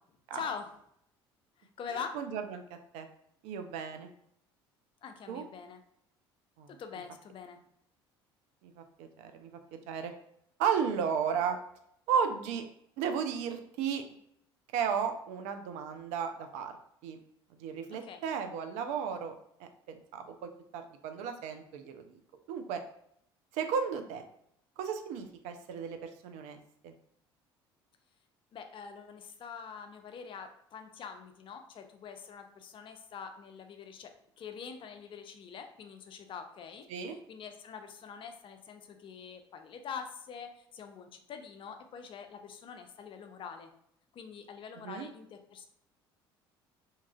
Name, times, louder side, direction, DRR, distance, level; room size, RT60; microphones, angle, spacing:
voice 1, 0.3-0.7 1.6-2.2 5.0-5.8 6.7-7.6 17.9-18.2 28.5-36.9 37.3-43.7 44.1-45.6, left 6 dB, 40° left, 6 dB, 0.4 m, -44 dB
voice 2, 2.1-2.6 2.9-3.1 3.4-4.1 5.3-5.4 6.6-6.7 8.6-10.1 10.6-11.6 12.1-12.6 13.0-14.0 14.7-16.7 17.0-17.2 17.6-19.3 19.6-19.7 20.1-22.2 22.5-22.8 23.5-24.2 24.8-26.9 36.9-37.2 44.8-45.1, right 7 dB, 60° right, 7 dB, 0.4 m, -34 dB
2.8 x 2.4 x 2.3 m, 0.71 s
hypercardioid pair, 60°, 13 cm